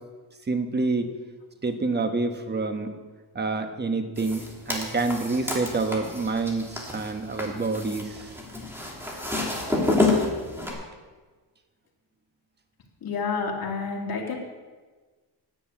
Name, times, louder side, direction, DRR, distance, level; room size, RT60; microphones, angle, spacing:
voice 1, 0.5-1.1 1.6-2.9 3.3-8.3, right 3 dB, 25° right, 7 dB, 1.2 m, -27 dB
sound 1, 4.2-10.7, left 2 dB, 5° right, 2.8 m, -29 dB
voice 2, 13.0-14.4, left 4 dB, 55° left, 0 dB, 2.7 m, -29 dB
10.5 x 8.3 x 8.4 m, 1.4 s
cardioid pair, 115°, 42 cm